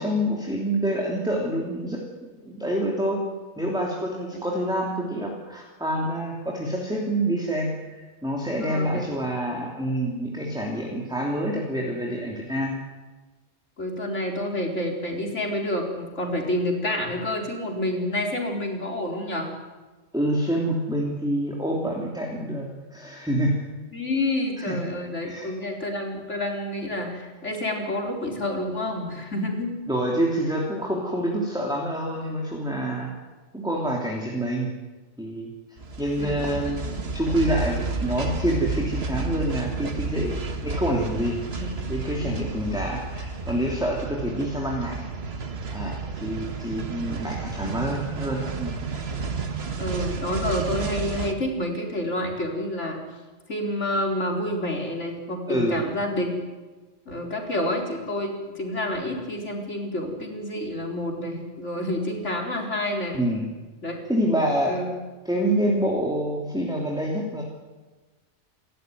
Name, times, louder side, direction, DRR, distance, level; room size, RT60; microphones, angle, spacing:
voice 1, 0.0-2.0 2.4-3.3 3.6-12.8 20.1-23.6 24.7-24.8 25.2-25.5 29.9-33.1 33.5-34.7 35.2-35.5 36.0-45.0 45.7-48.8 55.5-55.8 63.1-63.5 64.1-64.8 65.2-67.4, right 1 dB, 5° right, -2 dB, 3.1 m, -27 dB
voice 2, 8.6-9.3 13.8-19.5 23.9-29.7 36.2-36.9 41.6-41.7 42.2-42.4 49.8-53.0 53.5-56.3 57.1-63.2 63.8-63.9 64.6-64.9, left 1 dB, 85° left, 1 dB, 4.4 m, -29 dB
sound 1, 35.8-51.3, right 4 dB, 60° right, 1.8 m, -31 dB
28.5 x 13.5 x 9.5 m, 1.2 s
omnidirectional pair, 1.2 m